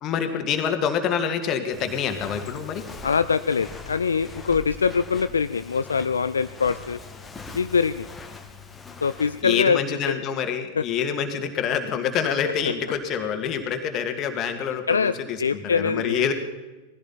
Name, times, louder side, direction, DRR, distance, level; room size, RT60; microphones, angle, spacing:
voice 1, 0.0-2.8 9.4-16.3, left 7 dB, 35° left, 6 dB, 2.1 m, -26 dB
Walk footsteps, 1.7-9.4, left 4 dB, 15° left, 1.7 m, -41 dB
voice 2, 3.0-7.0 7.5-8.1 9.0-9.8 10.1-10.2 10.8-10.9 14.9-15.1 15.4-16.3, left 5 dB, 75° left, 12 dB, 0.4 m, -23 dB
19.0 x 15.5 x 4.3 m, 1.2 s
figure-of-eight pair, 90°, 0 cm